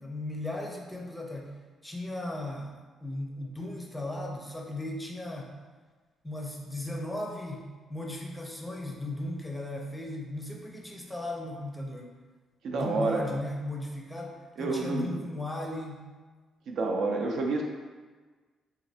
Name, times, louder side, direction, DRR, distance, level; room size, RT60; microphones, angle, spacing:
voice 1, 0.0-1.5 1.8-2.7 3.0-5.5 6.2-7.6 7.9-12.1 12.7-16.0, left 1 dB, 10° left, 0 dB, 0.5 m, -36 dB
voice 2, 12.6-13.3 14.6-15.2 16.7-17.6, right 3 dB, 70° right, 1 dB, 0.4 m, -29 dB
3.1 x 2.4 x 2.7 m, 1.4 s
cardioid pair, 90°, 0 cm